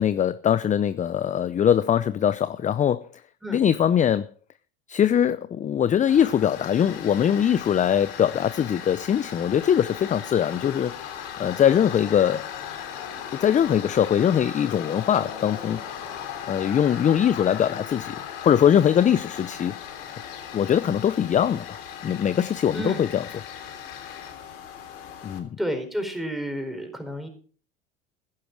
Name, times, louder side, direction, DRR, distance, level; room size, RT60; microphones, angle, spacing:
voice 1, 0.0-3.1 3.5-4.3 4.9-11.1 11.4-12.5 13.3-15.8 16.5-19.7 20.5-23.4 25.2-25.5, left 9 dB, 25° left, 0.6 m, -22 dB
Tools, 6.1-25.4, left 9 dB, 70° left, 3.4 m, -37 dB
voice 2, 22.7-23.0 25.6-27.3, right 1 dB, ahead, 4.6 m, -30 dB
15.5 x 11.5 x 4.6 m
hypercardioid pair, 85°, 29 cm